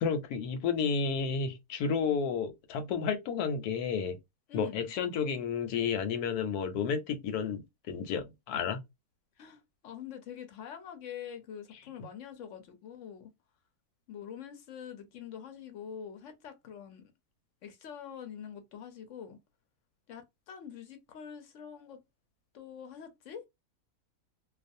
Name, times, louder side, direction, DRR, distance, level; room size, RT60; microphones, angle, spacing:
voice 1, 0.0-4.2 4.5-8.8, left 6 dB, 85° left, 1.1 m, -31 dB
voice 2, 4.5-4.9 9.4-13.3 14.1-17.1 17.6-19.4 20.1-22.0 22.5-23.5, left 8 dB, 65° left, 0.8 m, -45 dB
2.4 x 2.3 x 2.5 m
omnidirectional pair, 1.6 m